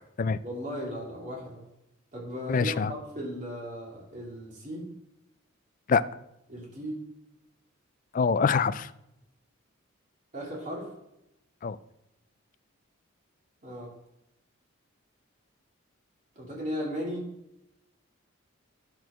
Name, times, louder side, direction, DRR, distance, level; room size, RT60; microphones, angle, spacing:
voice 1, 0.4-1.6 2.1-4.9 6.5-7.0 10.3-10.9 13.6-13.9 16.4-17.3, equal, 35° right, -3 dB, 2.7 m, -36 dB
voice 2, 2.5-2.9 5.9-6.0 8.1-8.9 11.6-11.8, left 5 dB, 40° left, 15 dB, 0.3 m, -24 dB
10.0 x 4.6 x 6.1 m, 0.86 s
head